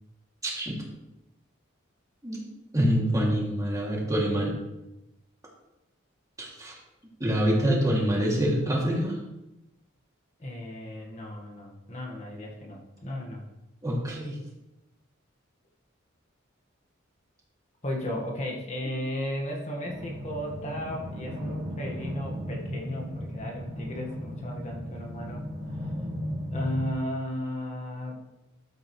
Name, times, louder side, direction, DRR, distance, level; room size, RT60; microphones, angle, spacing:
voice 1, 0.4-0.8 2.2-2.5 2.7-4.5 6.4-6.8 7.2-9.2 13.8-14.4, equal, 15° right, -4 dB, 2.5 m, -26 dB
voice 2, 10.4-13.4 17.8-25.4 26.5-28.3, left 1 dB, 35° left, 0 dB, 1.6 m, -35 dB
sound 1, 19.8-26.9, equal, 50° right, 2.1 m, -35 dB
12.5 x 8.7 x 3.2 m, 0.95 s
head